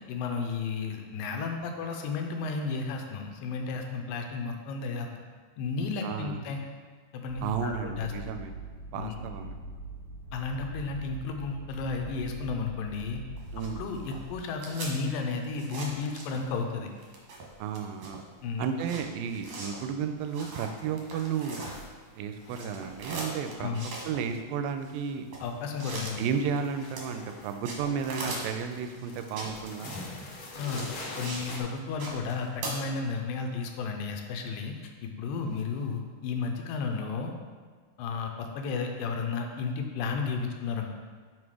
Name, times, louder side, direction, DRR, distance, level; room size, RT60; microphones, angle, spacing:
voice 1, 0.1-5.1 5.6-6.6 7.1-8.1 8.9-9.2 10.3-13.2 13.8-16.9 18.4-18.7 23.6-23.9 25.4-26.2 30.6-37.3 38.0-41.0, left 4 dB, 85° left, 4 dB, 2.3 m, -33 dB
voice 2, 6.0-6.4 7.4-8.5 8.9-9.6 13.5-13.8 17.6-18.2 18.6-21.6 22.2-23.7 24.0-25.3 26.2-30.0 35.4-35.6, right 6 dB, 85° right, 7 dB, 2.3 m, -33 dB
sound 1, 7.3-14.3, right 2 dB, 40° right, 1.7 m, -42 dB
sound 2, 13.4-16.7 17.0-22.1 22.4-31.5 31.8-32.7, right 2 dB, 65° right, 2.0 m, -41 dB
sound 3, 20.3-20.7 20.9-22.0 22.3-24.6 24.8-25.3 25.6-31.6, left 2 dB, 70° left, 1.5 m, -45 dB
5.7 x 4.9 x 4.8 m, 1.6 s
omnidirectional pair, 4.0 m